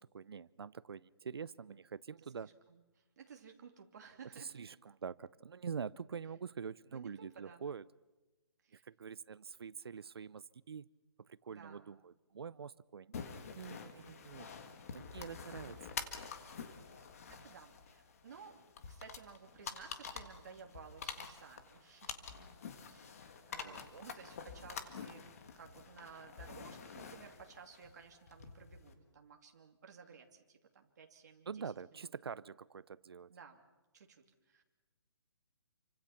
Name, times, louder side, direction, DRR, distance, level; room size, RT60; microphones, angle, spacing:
voice 1, 0.0-2.5 4.4-7.8 8.7-10.9 11.3-13.2 13.6-14.6 14.9-15.8 23.6-24.1 31.5-33.3, right 6 dB, 60° right, 20 dB, 0.7 m, -46 dB
voice 2, 2.4-4.7 6.9-7.6 8.6-8.9 11.5-11.9 16.9-22.3 22.9-25.2 25.5-31.6 31.9-32.1 33.3-33.6 33.9-34.6, right 6 dB, 40° right, 3 dB, 2.7 m, -56 dB
sound 1, 13.1-28.9, left 6 dB, 30° left, 1.7 m, -48 dB
28.5 x 25.0 x 5.9 m, 1.1 s
hypercardioid pair, 175°, 14 cm